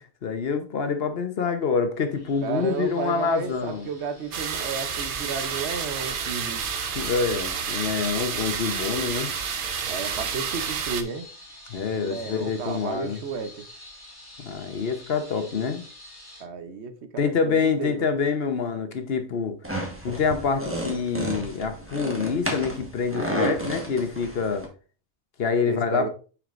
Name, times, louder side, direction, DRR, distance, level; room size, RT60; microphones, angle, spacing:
voice 1, 0.2-3.8 7.0-9.3 11.7-13.2 14.4-15.8 17.2-19.6 20.0-24.7 25.4-26.1, left 5 dB, 65° left, 1.1 m, -26 dB
sound 1, 2.1-16.4, left 1 dB, 20° left, 2.2 m, -47 dB
voice 2, 2.4-6.7 9.9-11.3 11.9-13.6 16.4-18.1 25.7-26.1, right 5 dB, 80° right, 1.1 m, -33 dB
sound 2, 4.3-11.0, right 6 dB, 55° right, 0.8 m, -30 dB
sound 3, 19.6-24.7, right 1 dB, 10° right, 1.3 m, -31 dB
9.1 x 4.8 x 2.5 m
omnidirectional pair, 1.1 m